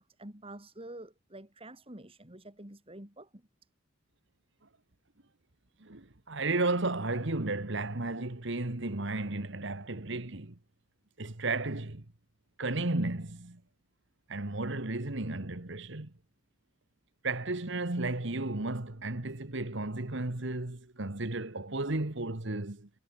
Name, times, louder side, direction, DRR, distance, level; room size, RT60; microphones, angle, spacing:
voice 1, 0.0-3.4, right 1 dB, 30° right, 4.4 m, -48 dB
voice 2, 5.8-10.5 11.2-12.0 12.6-13.6 14.3-16.1 17.2-22.9, right 2 dB, 65° right, 1.8 m, -33 dB
head